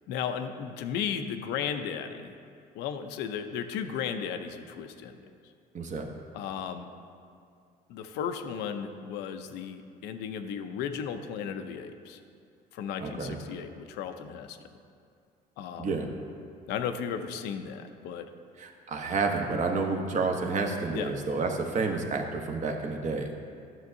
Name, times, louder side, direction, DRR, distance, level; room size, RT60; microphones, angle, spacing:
voice 1, 0.1-2.3 2.7-5.2 6.3-6.9 7.9-12.2 12.7-14.6 15.6-16.0 16.7-18.3 20.9-21.1, left 7 dB, 90° left, 7 dB, 0.5 m, -35 dB
voice 2, 5.7-6.1 13.0-13.4 15.8-16.1 18.6-23.3, right 4 dB, 45° right, 3 dB, 0.9 m, -30 dB
11.0 x 6.4 x 2.6 m, 2.3 s
cardioid pair, 110°, 17 cm